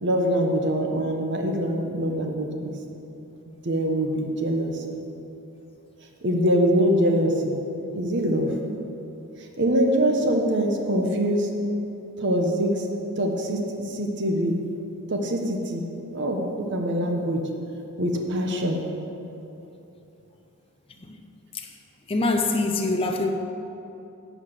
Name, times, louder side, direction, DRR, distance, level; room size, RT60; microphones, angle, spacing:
voice 1, 0.0-2.7 3.6-5.0 6.2-7.5 7.9-8.5 9.6-11.5 12.2-12.8 13.2-13.6 13.9-14.5 15.1-15.8 16.1-17.4 18.0-18.8, equal, 55° right, 2 dB, 1.1 m, -24 dB
voice 2, 22.1-23.3, left 2 dB, 25° left, 4 dB, 0.5 m, -24 dB
11.5 x 4.8 x 8.1 m, 2.9 s
head